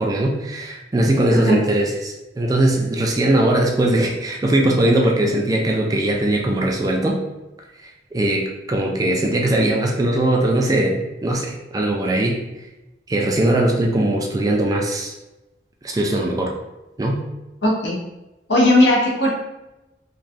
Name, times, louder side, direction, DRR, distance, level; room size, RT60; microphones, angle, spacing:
voice 1, 0.0-7.2 7.8-12.4 13.1-15.1 15.8-16.5 17.0-17.2, right 1 dB, 20° right, 0 dB, 0.3 m, -20 dB
voice 2, 1.3-1.6 17.6-18.0 18.5-19.3, left 1 dB, 65° left, -3 dB, 0.8 m, -17 dB
3.1 x 2.2 x 2.5 m, 0.99 s
head